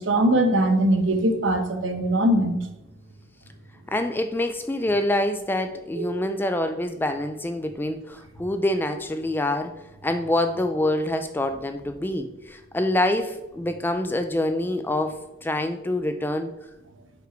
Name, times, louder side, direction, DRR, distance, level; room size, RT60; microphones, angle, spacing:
voice 1, 0.0-2.6 6.0-6.1, right 1 dB, 70° right, 6 dB, 0.9 m, -21 dB
voice 2, 3.9-9.7 10.0-16.5, left 1 dB, 10° left, 8 dB, 0.3 m, -26 dB
5.3 x 5.1 x 4.4 m, 1.0 s
head